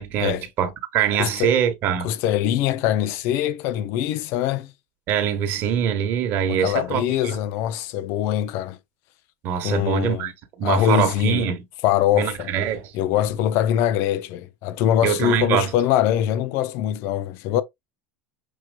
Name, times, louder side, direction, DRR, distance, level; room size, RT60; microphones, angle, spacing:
voice 1, 0.0-2.1 5.1-7.4 9.4-11.6 12.1-12.9 15.0-15.7, right 9 dB, 50° right, 1.3 m, -23 dB
voice 2, 1.2-1.5 2.0-4.7 6.5-8.8 9.6-10.3 10.6-11.5 11.8-12.5 12.9-17.6, left 11 dB, 60° left, 0.6 m, -23 dB
6.3 x 3.0 x 2.3 m
supercardioid pair, 110°, 5 cm